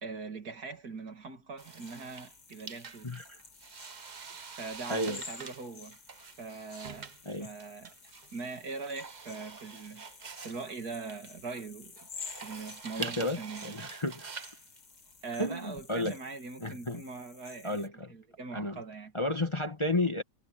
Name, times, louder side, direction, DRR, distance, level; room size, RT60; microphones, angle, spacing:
voice 1, 0.0-3.1 4.5-6.0 6.4-7.1 7.4-7.9 8.3-10.0 10.4-12.0 12.4-13.9 15.2-19.1, right 4 dB, 65° right, 2.8 m, -42 dB
sound 1, 1.6-17.9, left 6 dB, 90° left, 2.5 m, -52 dB
sound 2, 1.6-16.1, right 5 dB, 35° right, 0.7 m, -46 dB
voice 2, 3.0-3.4 4.9-5.2 7.2-7.5 13.0-14.3 15.4-16.1 16.6-17.0 17.6-18.1 18.5-18.8 19.1-20.2, left 1 dB, 20° left, 1.3 m, -32 dB
omnidirectional pair, 1.8 m